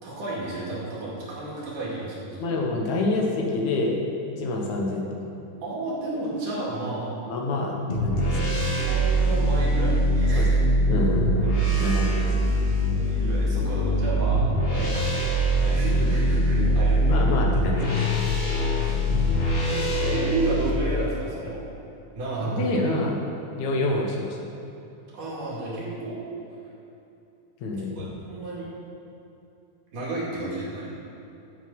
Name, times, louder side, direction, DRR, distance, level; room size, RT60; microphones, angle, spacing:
voice 1, 0.0-2.6 5.6-7.1 8.7-10.6 11.4-11.9 12.9-15.1 15.6-17.2 18.4-19.2 19.7-21.7 22.2-22.9 25.1-26.2 28.0-28.7 29.9-30.9, right 2 dB, 90° right, -6 dB, 3.9 m, -32 dB
voice 2, 2.4-4.0 4.4-5.3 7.3-8.6 10.4-12.3 16.6-16.7 17.1-18.0 22.4-23.2 23.6-24.4 27.6-28.1, left 2 dB, 70° left, 0 dB, 2.6 m, -27 dB
sound 1, 7.9-20.7, equal, 40° left, 0.8 m, -23 dB
13.0 x 7.2 x 5.4 m, 2.8 s
omnidirectional pair, 3.6 m